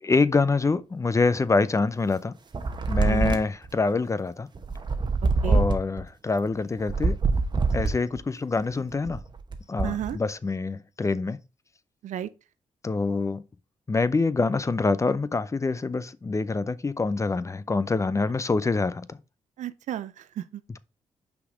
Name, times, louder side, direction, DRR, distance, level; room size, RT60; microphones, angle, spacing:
voice 1, 0.0-2.3 2.9-4.5 5.4-7.2 7.7-9.2 9.7-11.4 12.8-13.4 13.9-19.2 20.7-20.8, left 3 dB, 25° left, 0.5 m, -25 dB
sound 1, 2.5-3.7 4.6-6.0 6.8-8.2 8.9-10.1, right 3 dB, 35° right, 1.0 m, -24 dB
voice 2, 3.0-3.4 5.2-5.6 9.8-10.2 12.0-12.3 19.6-20.6, right 11 dB, 80° right, 0.5 m, -33 dB
5.8 x 4.0 x 5.0 m
cardioid pair, 80°, 12 cm